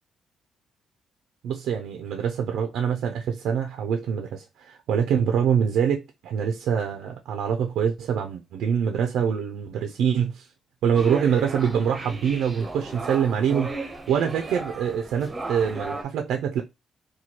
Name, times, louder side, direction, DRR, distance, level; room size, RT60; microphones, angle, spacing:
voice 1, 1.4-10.5 10.8-16.6, right 7 dB, 90° right, 0.4 m, -25 dB
sound 1, 10.9-16.0, right 2 dB, 20° right, 0.7 m, -35 dB
4.2 x 2.3 x 3.0 m
cardioid pair, 115°, 0 cm